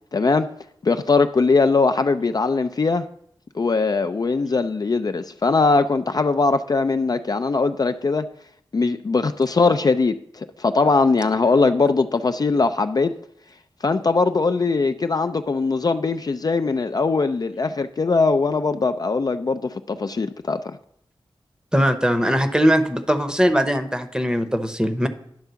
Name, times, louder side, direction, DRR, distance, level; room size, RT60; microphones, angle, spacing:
voice 1, 0.1-0.5 0.8-3.1 3.5-8.3 8.7-13.1 13.8-20.8, left 4 dB, 45° left, 9 dB, 0.4 m, -20 dB
voice 2, 21.7-25.1, equal, 10° right, 9 dB, 0.8 m, -20 dB
10.5 x 3.6 x 6.8 m, 0.71 s
cardioid pair, 55°, 9 cm